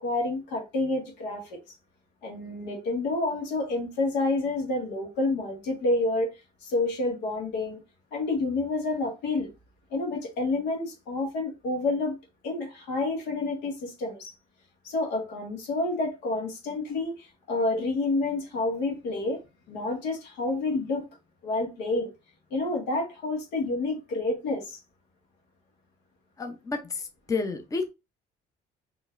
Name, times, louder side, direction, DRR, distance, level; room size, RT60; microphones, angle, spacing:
voice 1, 0.0-1.5 2.2-6.3 6.6-7.8 8.1-9.5 9.9-12.2 12.4-14.3 14.8-19.4 19.7-21.1 21.4-22.1 22.5-24.8, left 2 dB, 90° left, 1.6 m, -29 dB
voice 2, 26.4-27.9, left 4 dB, 20° left, 0.6 m, -31 dB
4.6 x 3.2 x 2.5 m
cardioid pair, 110°, 17 cm